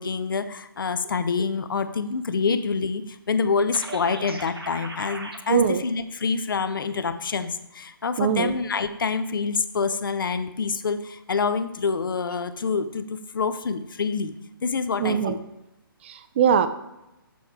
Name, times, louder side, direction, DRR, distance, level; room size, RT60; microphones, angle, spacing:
voice 1, 0.0-14.4 14.6-15.4, left 5 dB, 65° left, 12 dB, 0.6 m, -26 dB
sound 1, 3.7-5.4, right 2 dB, 80° right, 1.1 m, -37 dB
voice 2, 5.5-5.8 8.2-8.5 15.0-15.3 16.0-16.7, right 7 dB, 30° right, 11 dB, 0.4 m, -21 dB
7.3 x 4.4 x 4.3 m, 0.95 s
figure-of-eight pair, 140°, 12 cm